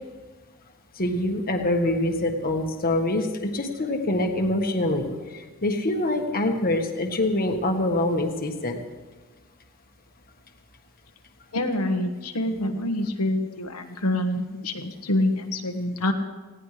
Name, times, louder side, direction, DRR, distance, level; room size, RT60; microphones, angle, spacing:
voice 1, 1.0-8.8, left 1 dB, 40° left, 4 dB, 1.5 m, -25 dB
voice 2, 11.5-16.1, left 1 dB, 85° left, 5 dB, 1.4 m, -26 dB
19.5 x 16.5 x 3.3 m, 1.3 s
head